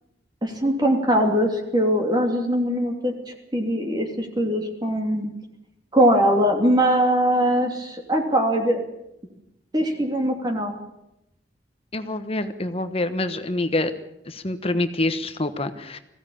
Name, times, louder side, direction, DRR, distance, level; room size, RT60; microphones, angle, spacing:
voice 1, 0.4-3.1 3.5-5.3 5.9-8.8 9.7-10.7, equal, 25° right, 2 dB, 3.0 m, -21 dB
voice 2, 11.9-13.9 14.3-16.0, left 2 dB, 35° left, 10 dB, 1.2 m, -26 dB
21.0 x 16.0 x 8.9 m, 0.84 s
head